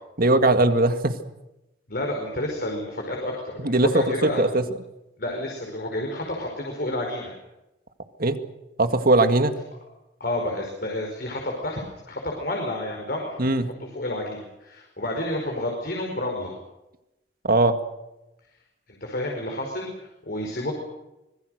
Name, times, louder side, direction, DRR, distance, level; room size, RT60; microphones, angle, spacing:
voice 1, 0.2-1.2 3.6-4.8 8.2-8.4 8.8-9.5 13.4-13.7 17.4-17.8, right 2 dB, 55° right, 8 dB, 1.9 m, -20 dB
voice 2, 1.9-4.4 5.2-7.3 10.2-16.5 18.9-20.7, left 1 dB, 55° left, 1 dB, 5.1 m, -30 dB
25.5 x 21.5 x 6.6 m, 0.95 s
head